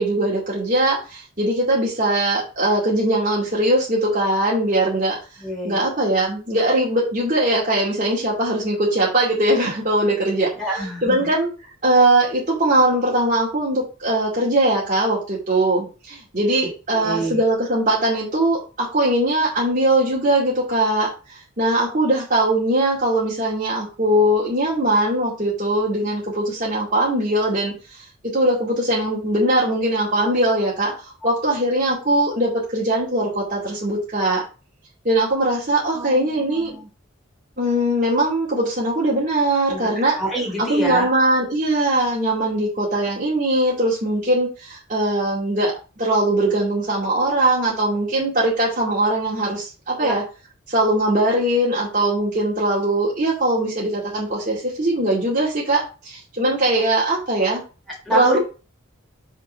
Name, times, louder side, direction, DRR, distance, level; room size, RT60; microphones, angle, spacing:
voice 1, 0.0-5.2 5.6-11.5 11.8-27.7 28.2-30.9 31.2-34.4 35.0-36.7 37.6-40.2 40.6-50.2 50.7-57.6 58.1-58.4, right 1 dB, 40° right, -6 dB, 2.5 m, -20 dB
voice 2, 5.4-5.8 10.5-11.3 16.6-17.4 35.9-36.9 39.7-39.9 40.2-41.1 50.0-50.1 58.0-58.4, right 1 dB, ahead, -4 dB, 3.3 m, -27 dB
5.8 x 4.5 x 5.7 m, 0.33 s
head